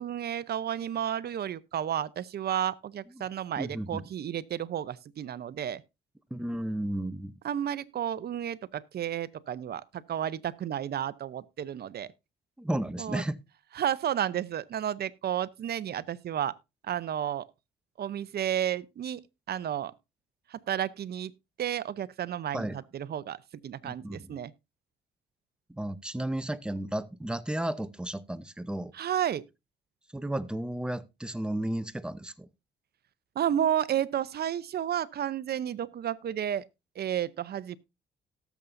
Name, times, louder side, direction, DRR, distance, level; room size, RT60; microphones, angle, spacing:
voice 1, 0.0-5.8 7.4-12.1 13.0-13.2 13.8-16.6 16.8-17.4 18.0-19.2 19.5-19.9 20.5-21.3 21.6-24.5 28.9-29.4 33.4-36.7 37.0-37.8, right 10 dB, 55° right, 0.7 m, -32 dB
voice 2, 3.6-4.1 6.3-7.3 12.6-13.4 22.5-22.8 23.8-24.4 25.7-28.9 30.1-32.5, right 1 dB, 5° right, 0.7 m, -33 dB
18.0 x 7.0 x 2.6 m
cardioid pair, 90°, 20 cm